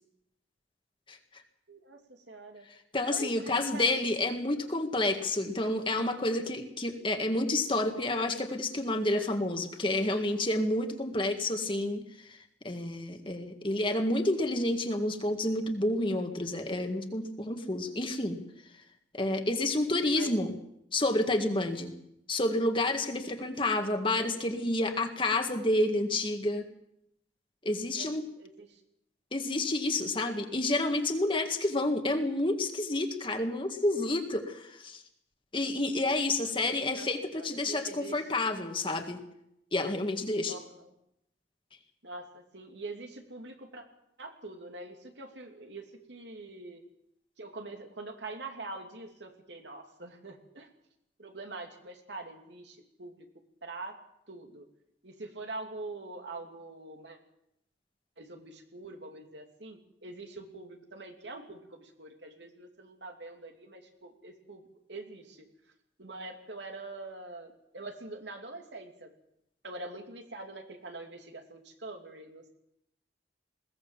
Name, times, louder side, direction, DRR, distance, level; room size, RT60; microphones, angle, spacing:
voice 1, 1.1-1.4 2.9-12.4 12.6-18.4 19.1-20.5 20.9-21.9 22.3-26.7 27.6-28.2 29.3-35.0 35.5-39.2 39.7-40.6, left 2 dB, 30° left, 5 dB, 1.9 m, -29 dB
voice 2, 1.7-2.7 3.1-3.9 14.7-15.0 19.2-19.8 20.2-20.3 27.9-28.8 36.9-38.4 40.5-40.9 42.0-43.8 44.2-46.8 47.4-50.7 51.2-53.2 53.6-53.9 54.3-54.6 55.0-57.2 58.2-64.6 64.9-65.4 66.0-69.1 69.6-72.5, right 2 dB, 85° right, 3 dB, 2.8 m, -44 dB
21.0 x 17.0 x 7.4 m, 0.81 s
head